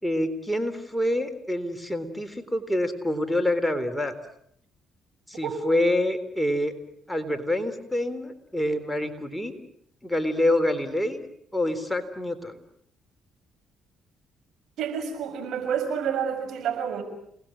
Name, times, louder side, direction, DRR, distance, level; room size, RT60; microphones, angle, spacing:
voice 1, 0.0-4.1 5.3-6.7 7.1-9.6 10.0-11.2 11.5-12.6, left 1 dB, 5° left, 7 dB, 3.8 m, -26 dB
voice 2, 14.8-17.0, right 7 dB, 70° right, 5 dB, 6.5 m, -29 dB
29.5 x 20.0 x 8.9 m, 0.70 s
supercardioid pair, 55°, 0 cm